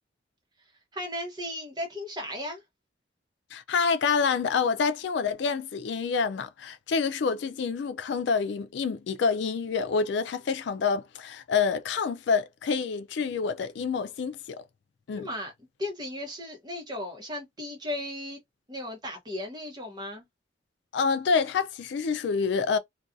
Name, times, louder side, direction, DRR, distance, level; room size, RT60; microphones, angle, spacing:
voice 1, 0.9-2.6 15.2-15.5 15.8-18.4 18.7-20.3, left 1 dB, 20° right, 0.9 m, -35 dB
voice 2, 3.5-14.6 15.1-15.3 20.9-22.8, left 5 dB, 70° left, 0.3 m, -27 dB
2.5 x 2.3 x 2.5 m
head